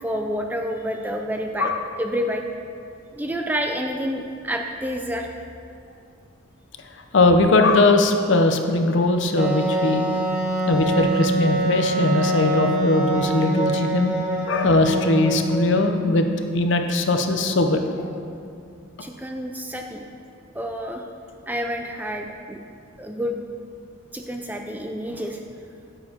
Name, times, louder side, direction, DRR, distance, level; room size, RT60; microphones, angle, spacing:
voice 1, 0.0-1.7 2.0-2.4 3.1-5.3 19.0-20.0 20.5-21.0 21.5-22.6 23.0-23.4 24.1-25.4, equal, 10° right, 3 dB, 0.3 m, -28 dB
voice 2, 7.1-10.0 10.7-14.1 14.5-16.3 16.5-18.0, left 2 dB, 55° left, 5 dB, 0.6 m, -20 dB
Wind instrument woodwind instrument, 9.4-15.8, right 2 dB, 35° right, 1.1 m, -24 dB
8.7 x 8.7 x 2.8 m, 2.5 s
head